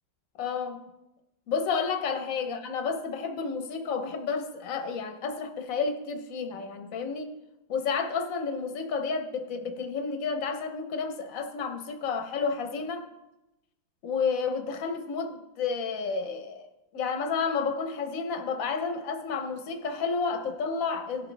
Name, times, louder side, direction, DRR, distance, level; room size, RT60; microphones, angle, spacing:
voice 1, 0.4-0.8 1.5-7.3 7.7-13.0 14.0-16.7 16.9-21.3, left 5 dB, 50° left, 5 dB, 1.2 m, -31 dB
17.0 x 6.7 x 3.4 m, 0.96 s
omnidirectional pair, 2.1 m